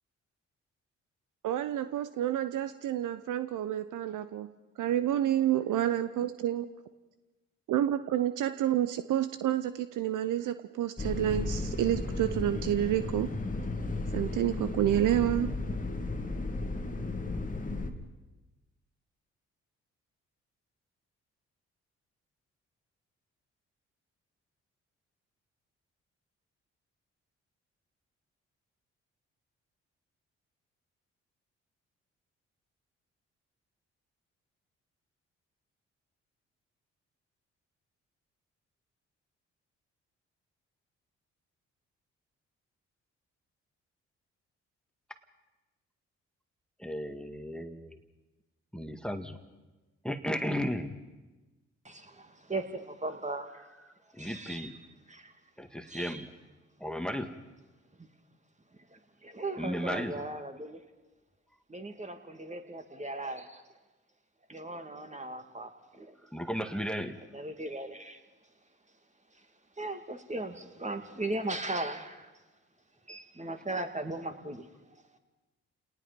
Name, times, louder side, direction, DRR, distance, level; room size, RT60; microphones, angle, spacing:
voice 1, 1.4-6.7 7.7-13.3 14.1-15.5, right 12 dB, 60° right, 12 dB, 0.8 m, -29 dB
sound 1, 11.0-17.9, left 2 dB, 25° left, 2.0 m, -34 dB
voice 2, 46.8-48.0 48.7-49.4 50.0-50.9 54.1-54.7 55.6-56.3 56.8-57.3 59.6-60.2 66.3-67.2, equal, ahead, 7 dB, 1.9 m, -34 dB
voice 3, 51.8-53.7 54.2-54.7 55.1-55.3 55.9-56.3 58.9-60.8 61.7-63.6 64.5-66.1 67.3-68.2 69.3-69.4 69.8-72.3 73.1-74.7, right 2 dB, 20° right, 6 dB, 2.5 m, -38 dB
30.0 x 18.5 x 5.3 m, 1.1 s
hypercardioid pair, 45°, 34 cm